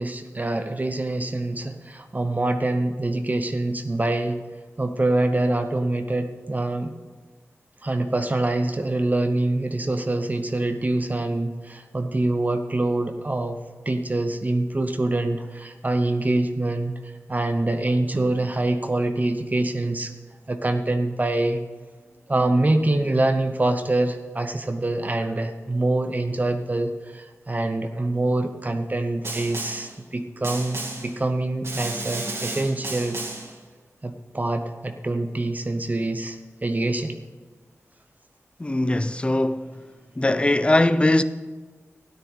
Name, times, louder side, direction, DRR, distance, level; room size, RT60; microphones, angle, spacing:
voice 1, 0.0-4.4 4.8-6.9 7.8-13.6 13.9-20.1 20.5-21.6 22.3-33.2 34.0-37.2, right 2 dB, 30° right, 0.8 m, -25 dB
Snare drum, 29.2-29.9 30.4-31.1 31.6-33.5, right 2 dB, 55° right, 2.1 m, -33 dB
voice 2, 38.6-39.8 40.2-41.2, left 1 dB, 20° left, 0.6 m, -21 dB
13.0 x 9.8 x 5.5 m
wide cardioid pair, 75°, 5 cm